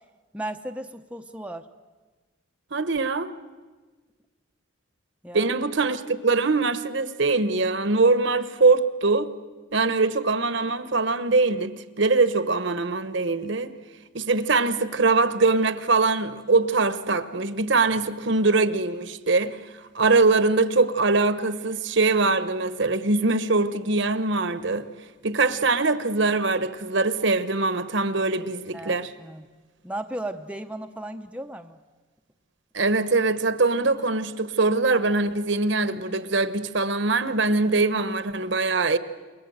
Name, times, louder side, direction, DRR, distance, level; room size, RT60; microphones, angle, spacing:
voice 1, 0.3-1.7 5.2-5.5 28.7-29.5 29.8-31.8, right 1 dB, 5° right, 0.7 m, -35 dB
voice 2, 2.7-3.3 5.3-9.3 9.7-13.7 14.1-19.6 19.9-24.8 25.2-29.1 32.7-39.0, right 3 dB, 55° right, 1.1 m, -22 dB
28.5 x 22.0 x 7.9 m
head